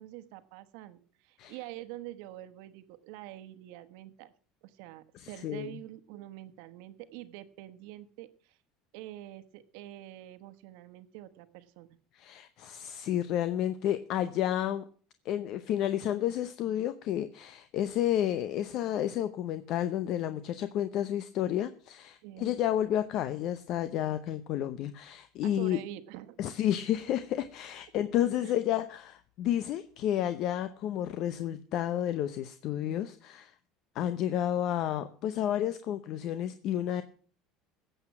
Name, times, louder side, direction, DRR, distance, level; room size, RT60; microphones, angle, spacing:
voice 1, 0.0-4.3 4.6-8.6 8.9-12.0 22.2-22.5 25.4-26.5 28.4-28.5, right 14 dB, 75° right, 10 dB, 1.1 m, -46 dB
voice 2, 5.1-5.7 12.1-14.9 15.2-25.8 26.4-33.5 33.9-37.0, left 11 dB, 55° left, 12 dB, 0.7 m, -31 dB
15.0 x 7.9 x 6.0 m, 0.43 s
supercardioid pair, 125°, 0 cm